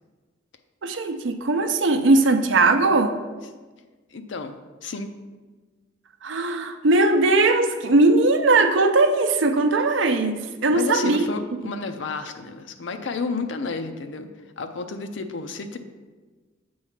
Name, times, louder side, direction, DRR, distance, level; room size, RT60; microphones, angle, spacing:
voice 1, 0.8-3.2 6.2-11.2 11.6-11.7, right 2 dB, 75° right, 8 dB, 0.5 m, -19 dB
voice 2, 4.1-5.1 10.7-14.3 14.6-15.8, left 4 dB, 70° left, 7 dB, 0.5 m, -31 dB
7.9 x 3.1 x 5.7 m, 1.3 s
head